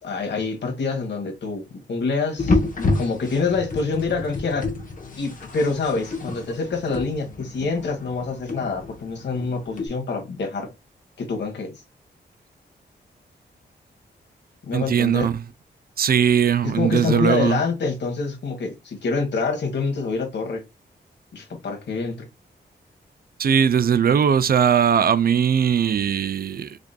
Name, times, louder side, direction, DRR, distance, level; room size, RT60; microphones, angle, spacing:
voice 1, 0.0-4.7 5.2-10.7 11.2-11.7 14.6-15.3 16.7-20.6 21.3-22.3, left 4 dB, 75° left, 1.4 m, -26 dB
sound 1, 2.4-9.9, left 3 dB, 45° left, 0.9 m, -29 dB
voice 2, 14.7-15.4 16.0-17.6 23.4-26.8, right 8 dB, 55° right, 0.4 m, -19 dB
4.9 x 2.6 x 2.2 m
cardioid pair, 85°, 18 cm